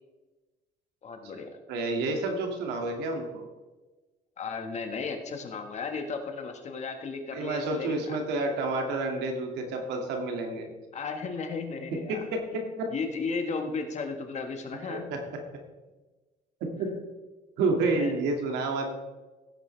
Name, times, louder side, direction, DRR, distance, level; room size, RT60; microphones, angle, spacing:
voice 1, 1.0-1.5 4.4-8.2 10.9-12.3 12.5-12.6 12.9-15.1 17.9-18.1, left 4 dB, 40° left, 5 dB, 1.7 m, -34 dB
voice 2, 1.7-3.4 7.3-10.7 12.1-12.4 12.8-12.9 14.9-15.2 16.8-16.9 17.6-18.9, right 3 dB, 85° right, 2 dB, 2.3 m, -29 dB
16.5 x 8.6 x 3.4 m, 1.2 s
cardioid pair, 110°, 17 cm